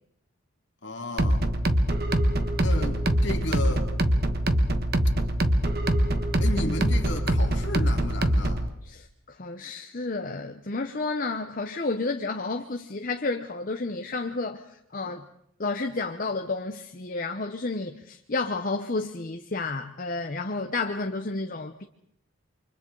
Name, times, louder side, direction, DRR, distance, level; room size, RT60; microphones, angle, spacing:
voice 1, 0.8-1.5 2.6-3.9 6.4-8.7, left 2 dB, 55° left, 2.6 m, -33 dB
sound 1, 1.2-8.7, right 1 dB, 45° right, 1.3 m, -24 dB
voice 2, 8.8-14.6 14.9-15.3 15.6-21.8, left 3 dB, 40° left, 0.8 m, -31 dB
29.0 x 24.5 x 3.9 m
head